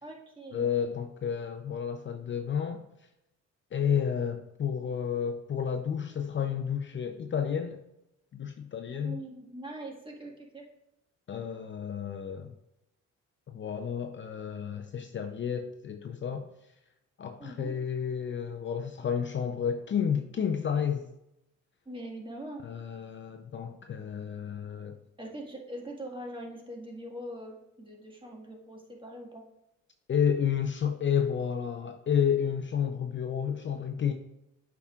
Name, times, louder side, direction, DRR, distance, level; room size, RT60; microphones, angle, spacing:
voice 1, 0.0-0.7 8.9-10.6 17.4-17.8 21.9-22.6 25.2-29.4, right 1 dB, 15° right, 0 dB, 1.8 m, -42 dB
voice 2, 0.5-2.8 3.7-7.8 8.3-9.2 11.3-12.5 13.5-16.5 17.2-21.1 22.6-25.0 30.1-34.1, left 8 dB, 40° left, 6 dB, 0.5 m, -31 dB
8.2 x 5.8 x 2.4 m, 0.84 s
cardioid pair, 90°, 30 cm